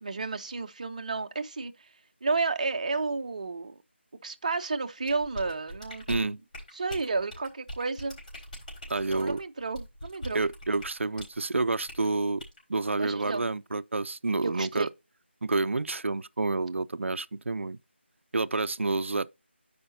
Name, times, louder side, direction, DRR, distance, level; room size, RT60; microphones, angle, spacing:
voice 1, 0.0-1.7 2.2-3.8 4.2-6.4 6.7-8.2 9.1-10.4 13.0-13.4 14.4-14.9, right 4 dB, 35° right, 0.6 m, -32 dB
sound 1, 5.0-11.4 11.9-12.1 12.4-12.6, equal, 40° left, 4.0 m, -42 dB
voice 2, 8.9-9.4 10.3-12.4 12.7-14.9 15.4-17.8 18.3-19.3, right 3 dB, 85° right, 0.4 m, -29 dB
12.5 x 5.0 x 2.7 m
figure-of-eight pair, 170°, 7 cm